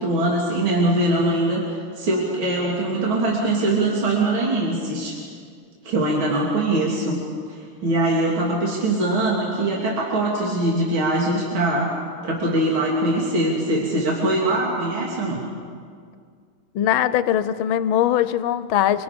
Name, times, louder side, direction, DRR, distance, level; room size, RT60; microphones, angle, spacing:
voice 1, 0.0-5.2 5.8-7.2 7.5-11.9 12.2-15.4, right 1 dB, 65° right, -4 dB, 3.5 m, -22 dB
voice 2, 16.7-19.0, left 11 dB, 75° left, 14 dB, 1.5 m, -21 dB
25.0 x 24.0 x 5.3 m, 2.1 s
omnidirectional pair, 2.3 m